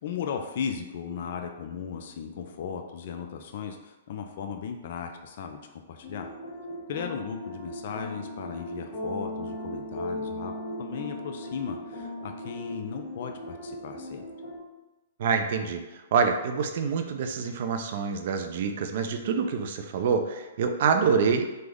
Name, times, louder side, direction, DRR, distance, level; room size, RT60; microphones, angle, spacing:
voice 1, 0.0-6.3 6.9-10.5 10.8-14.3, left 7 dB, 55° left, 4 dB, 0.3 m, -36 dB
sound 1, 6.0-14.6, left 1 dB, 40° left, 0.9 m, -37 dB
voice 2, 15.2-15.8 16.1-21.6, right 5 dB, 55° right, 6 dB, 0.4 m, -26 dB
3.2 x 2.0 x 3.5 m, 1.1 s
hypercardioid pair, 130°, 0 cm